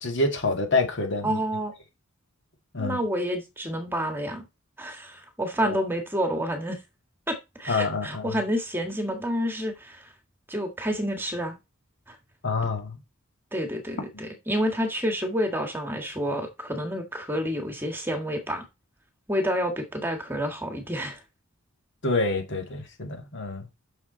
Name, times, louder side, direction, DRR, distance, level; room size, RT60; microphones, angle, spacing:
voice 1, 0.0-1.4 2.7-3.0 5.6-5.7 7.7-8.4 12.4-13.0 22.0-23.6, left 3 dB, 60° left, 2.1 m, -27 dB
voice 2, 1.2-1.7 2.8-4.5 4.8-6.8 7.3-10.0 10.5-11.6 12.1-12.2 13.5-18.6 19.3-21.2, equal, 10° right, 1.6 m, -29 dB
7.3 x 6.4 x 3.8 m
head